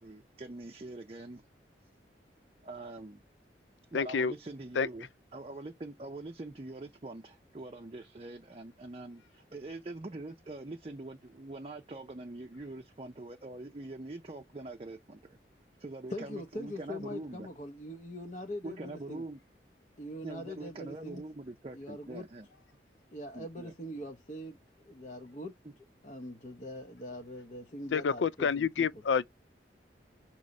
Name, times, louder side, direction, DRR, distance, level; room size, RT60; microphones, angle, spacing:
voice 1, 0.0-1.4 2.6-3.2 3.9-15.4 15.8-17.5 18.6-19.4 20.2-22.5 23.3-23.7, right 2 dB, 35° right, 0.6 m, -44 dB
voice 2, 3.9-4.3 4.8-4.9 27.9-29.3, left 6 dB, 90° left, 0.4 m, -28 dB
voice 3, 16.1-19.2 20.0-21.2 21.7-22.3 23.1-25.5 26.0-29.0, left 1 dB, 40° left, 0.9 m, -42 dB
6.3 x 3.0 x 5.3 m
head